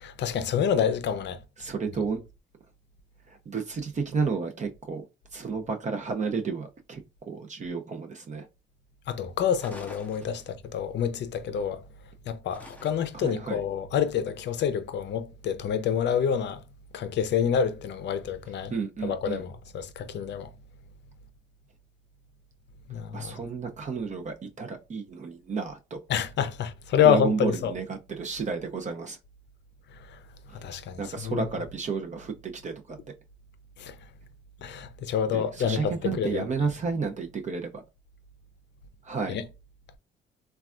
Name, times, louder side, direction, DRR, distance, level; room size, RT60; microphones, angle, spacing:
voice 1, 0.0-1.4 9.1-11.8 12.3-16.6 16.9-18.7 19.0-20.5 22.9-23.3 26.1-27.7 30.0-30.2 30.5-31.5 33.8-34.0 34.6-36.5 39.3-39.4, left 8 dB, 60° left, 0.5 m, -28 dB
voice 2, 1.6-2.2 3.5-5.0 5.3-7.0 7.3-8.5 13.1-13.6 18.7-19.4 23.1-26.0 27.0-29.2 31.0-33.0 35.3-37.8 39.0-39.4, right 5 dB, 40° right, 0.5 m, -31 dB
sound 1, 9.6-10.8 12.5-13.3, left 1 dB, 10° left, 0.6 m, -47 dB
3.2 x 2.3 x 2.4 m
cardioid pair, 90°, 20 cm